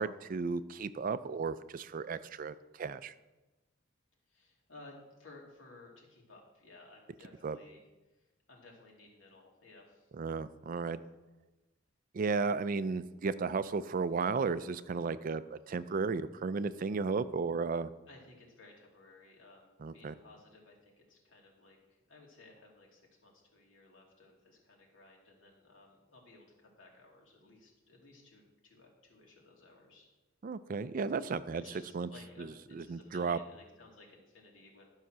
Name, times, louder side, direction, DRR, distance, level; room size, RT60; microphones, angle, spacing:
voice 1, 0.0-3.1 7.4-7.6 10.2-11.0 12.1-17.9 19.8-20.1 30.4-31.6 31.9-32.1 32.4-33.4, right 4 dB, 45° right, 14 dB, 0.4 m, -34 dB
voice 2, 4.3-7.8 8.1-10.1 18.1-30.1 31.6-34.9, left 2 dB, 75° left, -1 dB, 2.7 m, -57 dB
12.0 x 5.7 x 6.1 m, 1.1 s
head